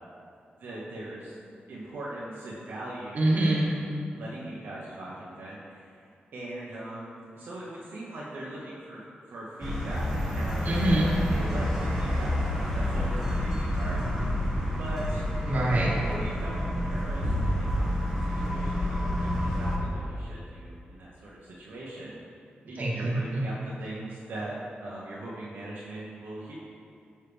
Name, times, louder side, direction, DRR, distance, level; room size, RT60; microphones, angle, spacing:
voice 1, 0.6-1.4 1.7-3.8 4.1-6.0 6.3-9.0 9.3-10.6 11.0-14.0 14.8-15.2 15.8-22.2 22.7-26.5, right 1 dB, 75° right, -7 dB, 0.9 m, -40 dB
voice 2, 3.1-3.7 10.6-11.1 15.5-15.9 22.8-23.4, right 1 dB, 50° right, -5 dB, 1.4 m, -25 dB
sound 1, 9.6-19.8, equal, 5° right, 1.2 m, -28 dB
6.9 x 5.5 x 3.3 m, 2.4 s
wide cardioid pair, 130°, 4 cm